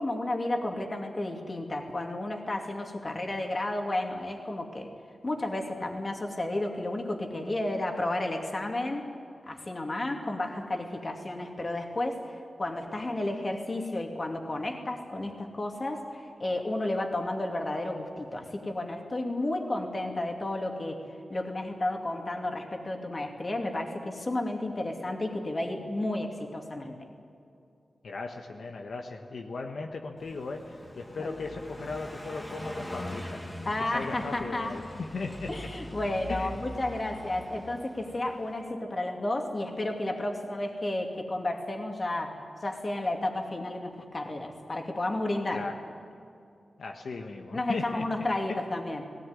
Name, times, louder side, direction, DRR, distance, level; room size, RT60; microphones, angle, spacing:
voice 1, 0.0-4.9 5.2-9.1 9.5-21.0 21.3-27.1 31.2-31.3 33.7-34.8 35.5-45.6 47.5-49.1, left 1 dB, 30° left, 2 dB, 2.5 m, -32 dB
voice 2, 28.0-33.4 33.8-35.5 36.3-36.6 45.5-45.8 46.8-48.1, left 3 dB, 75° left, 3 dB, 1.4 m, -37 dB
Car passing by, 30.2-38.6, left 1 dB, 15° left, 2.2 m, -42 dB
19.0 x 17.5 x 9.7 m, 2.6 s
wide cardioid pair, 135°, 0 cm